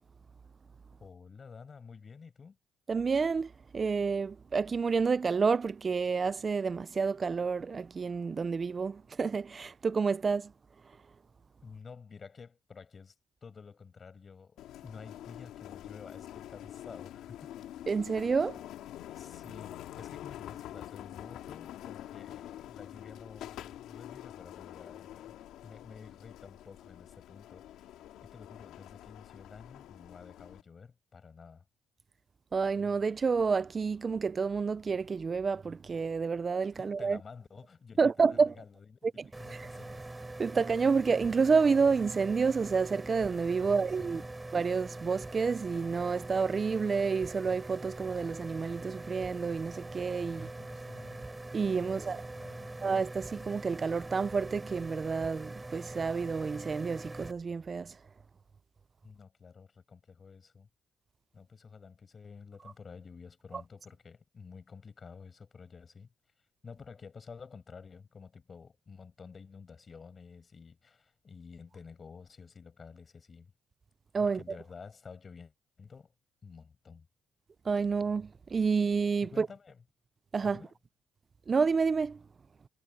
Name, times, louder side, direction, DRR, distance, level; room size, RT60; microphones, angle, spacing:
voice 1, 1.0-2.6 11.6-13.1 13.4-17.6 19.2-27.9 28.2-31.6 36.7-40.1 43.6-44.3 50.2-51.3 51.8-52.8 59.0-60.7 61.3-66.1 66.6-73.5 74.2-76.1 76.4-77.1 79.2-79.8 80.4-80.8, left 5 dB, 40° left, 7.7 m, -51 dB
voice 2, 2.9-10.5 17.9-18.6 32.5-37.2 38.0-38.5 40.4-44.2 44.5-50.5 51.5-52.2 52.8-57.9 74.1-74.4 77.7-79.5 80.3-80.6 81.5-82.2, right 5 dB, 35° right, 0.5 m, -29 dB
sound 1, 14.6-30.6, left 12 dB, 85° left, 2.4 m, -46 dB
sound 2, 39.3-57.3, right 2 dB, 15° right, 6.4 m, -43 dB
cardioid pair, 90°, 0 cm